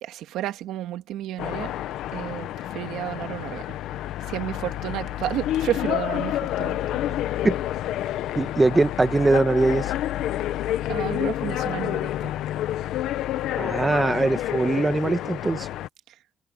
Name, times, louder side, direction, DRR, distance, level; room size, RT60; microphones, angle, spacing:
voice 1, 0.0-1.7 2.1-3.8 4.3-7.0 10.9-12.3, right 12 dB, 90° right, 1.7 m, -31 dB
sound 1, 1.4-15.9, left 13 dB, 85° left, 0.8 m, -29 dB
voice 2, 8.3-9.9 13.6-15.7, right 2 dB, 20° right, 1.8 m, -21 dB
cardioid pair, 90°, 0 cm